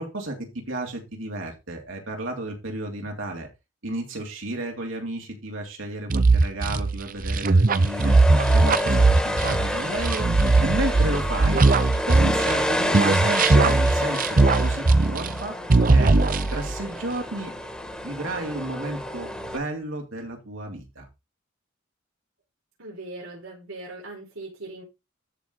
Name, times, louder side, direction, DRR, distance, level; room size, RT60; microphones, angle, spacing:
voice 1, 0.0-3.5 3.8-8.2 8.5-10.3 10.6-11.6 12.1-16.1 16.5-17.5 18.0-21.1, right 2 dB, 70° right, 1 dB, 3.1 m, -32 dB
sound 1, 6.1-12.6 12.9-15.4 15.7-16.8, right 3 dB, 40° right, 0.7 m, -19 dB
sound 2, 7.7-19.6, left 1 dB, 5° left, 2.0 m, -28 dB
voice 2, 22.8-24.8, right 2 dB, 85° right, -3 dB, 4.7 m, -39 dB
13.0 x 4.9 x 3.9 m, 0.24 s
head